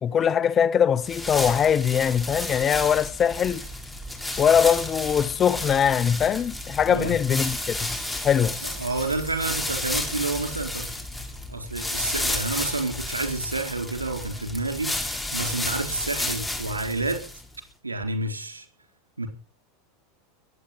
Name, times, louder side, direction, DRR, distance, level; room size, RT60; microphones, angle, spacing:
voice 1, 0.0-3.7 4.4-7.9 8.2-8.6, left 8 dB, 30° left, 0.9 m, -22 dB
sound 1, 1.0-17.6, left 1 dB, 5° left, 4.7 m, -32 dB
Chime, 7.8-11.9, right 2 dB, 25° right, 7.8 m, -47 dB
voice 2, 8.6-10.9 11.5-17.3 17.8-18.7 19.2-19.3, right 2 dB, 80° right, 4.1 m, -29 dB
22.0 x 9.5 x 5.9 m
figure-of-eight pair, 85°, 0 cm